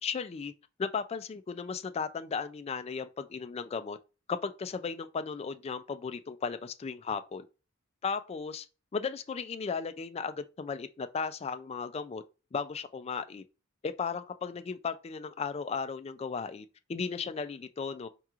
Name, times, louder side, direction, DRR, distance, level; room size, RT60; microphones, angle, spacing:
voice 1, 0.0-0.5 0.8-4.0 4.3-7.5 8.0-8.7 8.9-12.2 12.5-13.4 13.8-18.1, left 5 dB, 30° left, 0.3 m, -35 dB
4.6 x 2.9 x 2.4 m
head